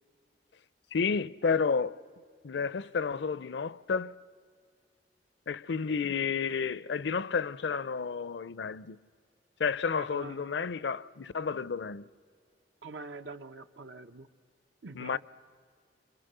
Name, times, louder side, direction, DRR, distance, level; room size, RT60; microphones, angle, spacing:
voice 1, 0.9-2.0 2.4-4.2 5.5-9.0 9.6-12.1 14.9-15.2, left 5 dB, 70° left, 0.5 m, -31 dB
voice 2, 10.0-10.5 12.8-14.3 14.8-15.2, right 3 dB, 90° right, 0.9 m, -45 dB
26.5 x 25.5 x 6.8 m
head